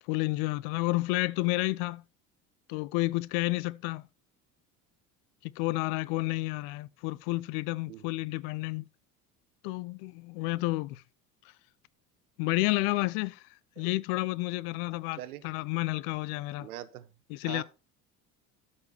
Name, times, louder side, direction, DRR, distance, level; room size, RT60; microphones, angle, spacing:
voice 1, 0.1-2.0 2.7-4.1 5.4-8.8 9.6-11.0 12.4-13.4 13.8-15.2 15.4-16.7 17.3-17.6, left 21 dB, 55° left, 0.7 m, -30 dB
voice 2, 15.1-15.4 16.6-17.1 17.4-17.6, right 13 dB, 70° right, 1.2 m, -42 dB
13.0 x 5.7 x 4.5 m
figure-of-eight pair, 60°, 47 cm